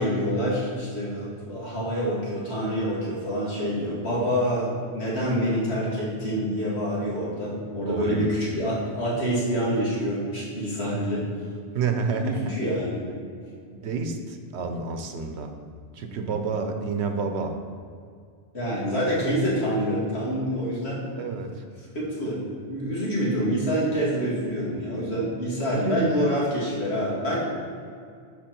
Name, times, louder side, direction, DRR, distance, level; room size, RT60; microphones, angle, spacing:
voice 1, 0.0-11.3 12.1-13.0 18.5-21.0 21.9-22.4 22.7-27.4, equal, 85° left, -7 dB, 2.7 m, -26 dB
voice 2, 7.9-8.5 11.7-12.5 13.7-15.5 15.9-17.6 21.2-21.5 25.7-26.1, right 4 dB, 90° right, 6 dB, 1.1 m, -29 dB
11.5 x 4.5 x 4.5 m, 2.3 s
omnidirectional pair, 1.1 m